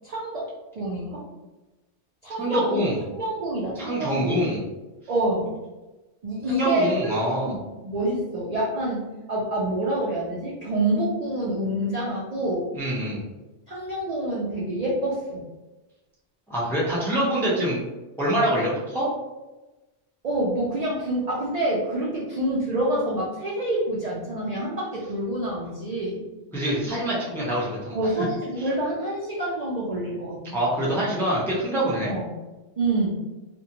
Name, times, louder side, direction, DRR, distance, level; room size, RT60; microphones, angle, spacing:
voice 1, 0.0-0.5 0.7-1.2 2.2-4.4 5.1-5.5 6.2-7.1 7.4-12.7 13.7-15.4 20.2-26.2 27.9-30.4 32.1-32.3 32.8-33.1, right 1 dB, 55° right, -6 dB, 0.4 m, -27 dB
voice 2, 2.4-3.0 3.8-4.6 6.5-7.5 12.7-13.2 16.5-17.8 18.2-19.1 26.5-28.0 30.5-32.2, right 1 dB, 5° left, -7 dB, 0.4 m, -25 dB
2.5 x 2.1 x 2.8 m, 1.1 s
omnidirectional pair, 1.2 m